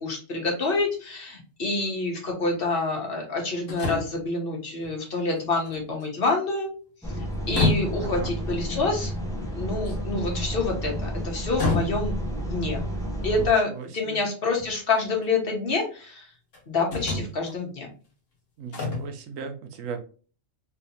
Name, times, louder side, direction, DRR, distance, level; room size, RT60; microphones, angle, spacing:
voice 1, 0.0-6.7 7.5-9.1 9.5-12.8 13.2-16.3 16.7-17.9, left 3 dB, 50° left, 0 dB, 1.1 m, -27 dB
sound 1, 0.7-0.8 3.7-4.2 4.8-4.9 5.3-6.3 7.3-8.1 9.8-10.2 11.6-12.3 13.8-13.9 14.6-15.3 16.5-16.6 16.9-17.5 18.7-19.1, left 3 dB, 75° left, 1.4 m, -28 dB
sound 2, 7.0-13.5, equal, 5° left, 0.3 m, -31 dB
voice 2, 8.0-8.3 13.4-14.2 18.6-20.0, right 6 dB, 90° right, 5 dB, 1.1 m, -37 dB
3.2 x 2.8 x 2.7 m, 0.38 s
omnidirectional pair, 1.3 m